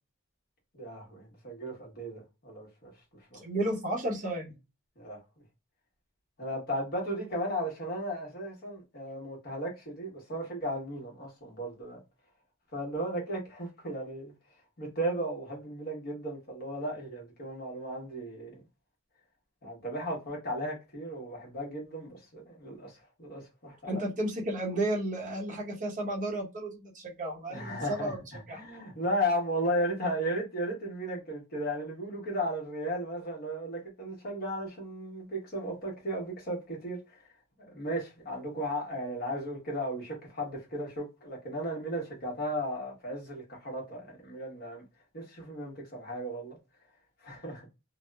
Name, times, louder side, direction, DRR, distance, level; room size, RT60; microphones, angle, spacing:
voice 1, 0.7-2.9 5.0-5.2 6.4-12.0 12.7-14.3 14.8-18.6 19.6-24.0 27.5-37.2 37.6-44.8 45.1-46.6 47.2-47.7, equal, 45° left, 1.1 m, -35 dB
voice 2, 3.4-4.5 23.8-28.2 28.5-28.6, right 1 dB, 35° right, 0.8 m, -32 dB
2.8 x 2.0 x 2.2 m
head